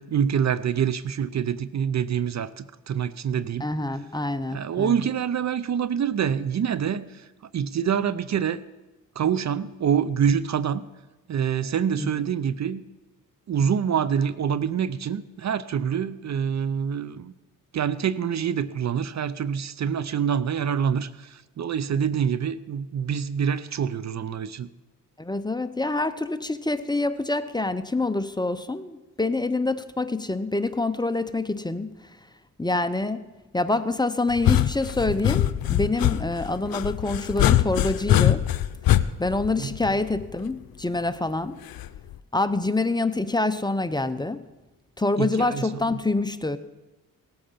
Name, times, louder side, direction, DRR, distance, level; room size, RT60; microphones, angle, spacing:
voice 1, 0.0-3.7 4.5-7.2 7.5-8.6 9.2-10.8 11.3-12.8 13.5-17.3 17.7-24.7 39.6-39.7 45.2-45.9, right 8 dB, 50° right, 16 dB, 0.6 m, -26 dB
voice 2, 3.6-5.1 12.0-12.1 25.2-31.9 32.6-33.2 33.5-38.4 39.2-41.6 42.3-44.4 45.0-46.6, left 2 dB, 10° left, 11 dB, 0.7 m, -26 dB
sound 1, 34.3-40.4 41.8-42.1, left 12 dB, 80° left, 0.6 m, -23 dB
18.0 x 8.7 x 5.7 m, 1.2 s
cardioid pair, 70°, 35 cm